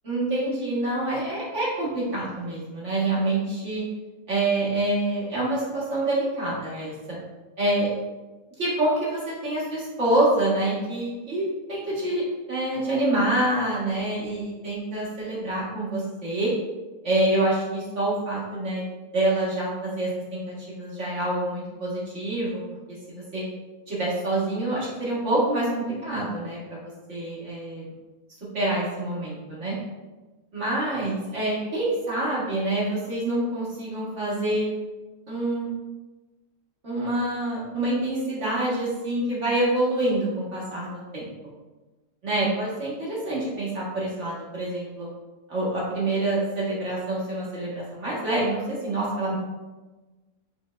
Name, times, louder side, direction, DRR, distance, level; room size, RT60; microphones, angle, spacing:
voice 1, 0.0-3.8 4.3-6.9 7.6-7.9 8.6-16.5 17.0-18.8 19.1-22.6 23.1-23.4 23.9-27.8 28.5-29.8 30.5-34.7 35.3-35.7 36.8-41.3 42.2-45.1 45.5-49.3, right 1 dB, 55° right, -7 dB, 1.7 m, -26 dB
5.2 x 3.5 x 2.4 m, 1.2 s
omnidirectional pair, 1.5 m